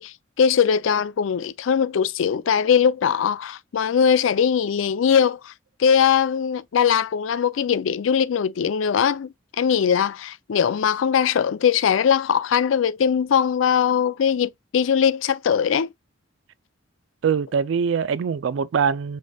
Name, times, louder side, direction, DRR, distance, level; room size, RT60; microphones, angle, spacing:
voice 1, 0.0-5.5 5.8-15.9, left 7 dB, 80° left, 0.4 m, -21 dB
voice 2, 17.2-19.2, right 6 dB, 70° right, 0.3 m, -23 dB
5.2 x 3.7 x 2.2 m
head